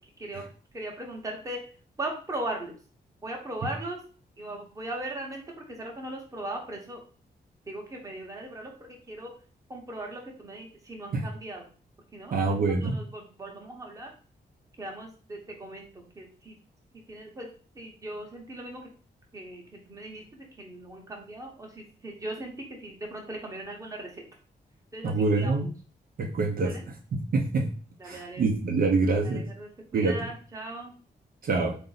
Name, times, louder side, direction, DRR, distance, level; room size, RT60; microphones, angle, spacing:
voice 1, 0.7-1.6 2.0-2.7 3.2-4.0 4.4-5.4 5.7-7.0 7.7-8.7 9.1-9.3 9.7-11.6 12.1-12.5 12.8-14.1 14.8-16.6 17.1-17.5 17.8-18.8 19.3-24.2 24.9-25.7 26.6-26.8 28.0-28.5 29.2-30.9, right 1 dB, 20° right, 0 dB, 0.9 m, -38 dB
voice 2, 12.3-13.0 25.0-25.7 26.2-26.8 27.1-27.7 28.0-29.4 29.9-30.2 31.4-31.8, right 3 dB, 60° right, 1 dB, 0.6 m, -25 dB
3.8 x 2.6 x 3.9 m, 0.39 s
wide cardioid pair, 145°, 17 cm